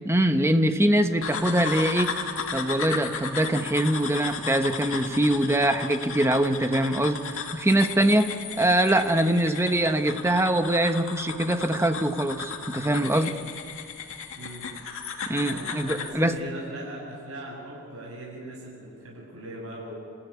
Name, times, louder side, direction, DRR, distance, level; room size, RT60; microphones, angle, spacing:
voice 1, 0.0-2.1 2.5-13.3 15.3-16.4, right 1 dB, 10° right, 7 dB, 1.3 m, -23 dB
sound 1, 1.2-16.2, left 5 dB, 65° left, 2.3 m, -35 dB
voice 2, 14.3-14.7 15.4-19.9, right 1 dB, 80° right, -4 dB, 7.8 m, -39 dB
28.5 x 15.0 x 9.8 m, 2.6 s
head